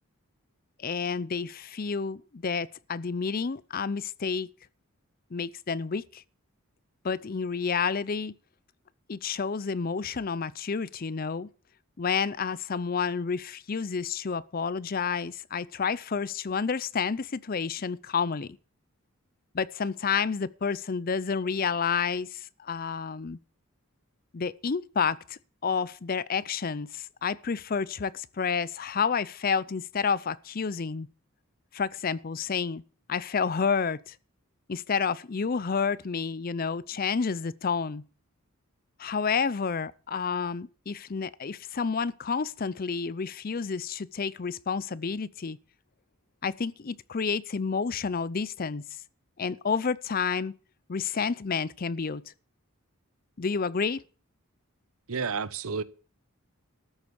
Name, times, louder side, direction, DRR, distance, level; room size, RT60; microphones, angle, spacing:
voice 1, 0.8-4.5 5.3-6.2 7.0-8.3 9.1-11.5 12.0-18.6 19.5-23.4 24.3-31.1 31.7-32.8 33.1-34.1 34.7-38.0 39.0-45.6 46.4-48.8 49.4-50.5 50.9-52.2 53.4-54.0, left 5 dB, 40° left, 0.5 m, -30 dB
voice 2, 55.1-55.8, right 5 dB, 75° right, 0.8 m, -30 dB
13.5 x 8.1 x 7.0 m
head